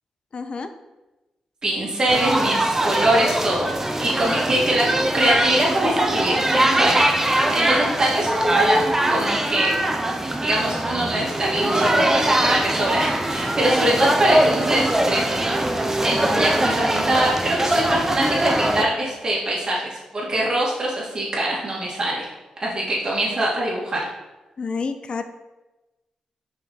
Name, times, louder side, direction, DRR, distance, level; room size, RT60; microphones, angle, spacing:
voice 1, 0.3-0.7 24.6-25.2, left 4 dB, 50° left, 8 dB, 0.5 m, -28 dB
voice 2, 1.6-3.7 4.0-4.9 5.1-8.8 9.1-9.8 10.4-22.3 22.6-24.1, right 1 dB, 35° right, -5 dB, 2.6 m, -23 dB
sound 1, 2.1-18.8, right 1 dB, 20° right, 0.9 m, -22 dB
5.9 x 5.8 x 4.4 m, 1.1 s
cardioid pair, 85°, 2 cm